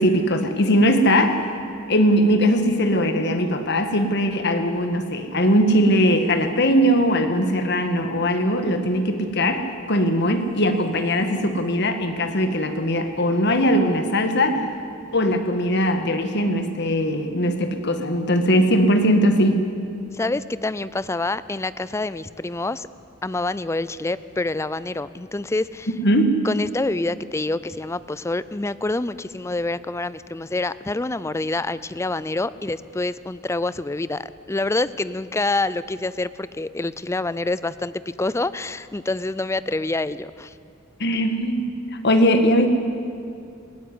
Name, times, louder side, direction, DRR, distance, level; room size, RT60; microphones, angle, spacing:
voice 1, 0.0-1.5 1.9-14.7 15.1-19.7 26.0-26.5 41.0-42.7, equal, 55° left, 7 dB, 1.7 m, -20 dB
voice 2, 20.1-22.9 23.2-25.9 26.4-40.5, left 2 dB, 15° left, 16 dB, 0.4 m, -27 dB
19.5 x 16.0 x 9.7 m, 2.5 s
head